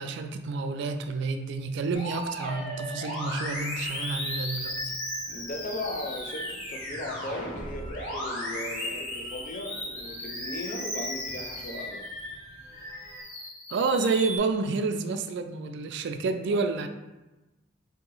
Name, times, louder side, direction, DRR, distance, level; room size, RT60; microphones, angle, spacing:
voice 1, 0.0-4.8 13.7-16.9, right 4 dB, 65° right, 8 dB, 0.3 m, -29 dB
Musical instrument, 1.9-12.4 12.8-14.4, left 1 dB, 85° left, 1.4 m, -36 dB
sound 1, 3.4-13.2, equal, 20° right, 0.7 m, -44 dB
voice 2, 5.3-12.1 16.5-16.6, left 1 dB, 45° left, 3 dB, 0.5 m, -37 dB
2.9 x 2.7 x 3.9 m, 1.0 s
head